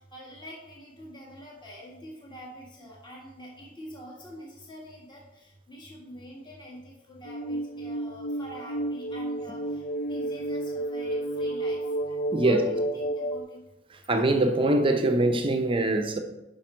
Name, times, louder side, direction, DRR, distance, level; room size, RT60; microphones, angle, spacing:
voice 1, 0.0-9.8 10.1-11.8 12.4-13.6, equal, 25° left, 1.7 m, -45 dB
sound 1, 7.2-13.4, right 1 dB, 50° left, 0.6 m, -31 dB
voice 2, 14.1-16.2, right 2 dB, 25° right, 0.7 m, -23 dB
11.0 x 5.3 x 4.4 m
head